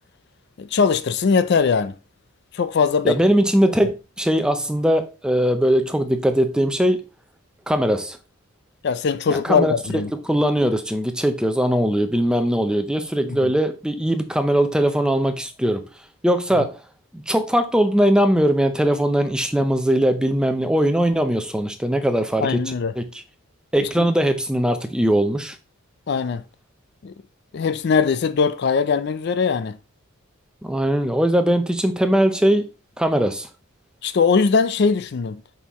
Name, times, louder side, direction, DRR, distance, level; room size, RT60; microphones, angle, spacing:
voice 1, 0.6-1.9 2.5-3.2 8.8-10.1 13.3-13.5 22.4-22.9 23.8-24.1 26.1-26.4 27.0-27.1 27.5-29.8 34.0-35.4, left 5 dB, 50° left, 0.4 m, -21 dB
voice 2, 3.0-7.0 7.7-8.2 9.3-9.7 10.1-15.8 16.2-16.8 17.1-23.2 23.7-25.6 30.6-32.6 33.0-33.5, equal, 5° right, 0.6 m, -20 dB
6.5 x 5.4 x 3.0 m
head